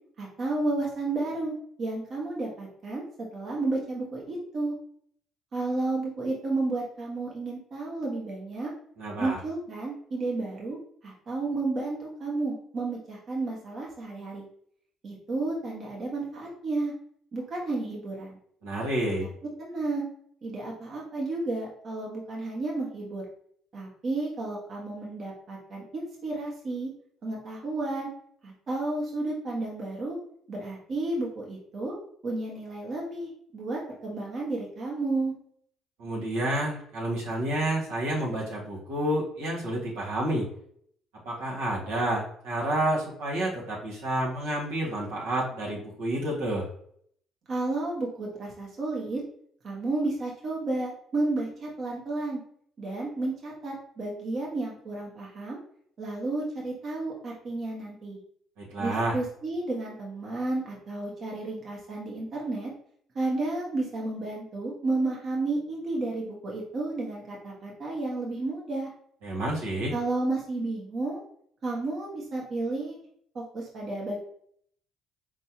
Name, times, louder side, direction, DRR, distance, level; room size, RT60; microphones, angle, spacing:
voice 1, 0.2-3.1 3.3-4.7 5.5-8.7 9.2-10.8 11.0-14.4 15.0-16.9 17.3-18.4 19.6-20.1 20.4-23.2 23.7-26.9 27.2-28.1 28.4-30.2 30.5-31.9 32.2-35.3 47.5-49.2 49.6-52.4 52.8-55.6 56.0-58.2 58.8-62.7 63.1-68.9 69.9-71.2 71.6-73.0 73.3-74.2, right 2 dB, 50° right, -3 dB, 1.3 m, -32 dB
voice 2, 9.0-9.4 18.6-19.3 36.0-40.5 41.2-46.7 58.6-59.2 69.2-69.9, right 1 dB, 90° right, -6 dB, 1.8 m, -29 dB
4.4 x 3.3 x 2.9 m, 0.64 s
supercardioid pair, 75°, 0 cm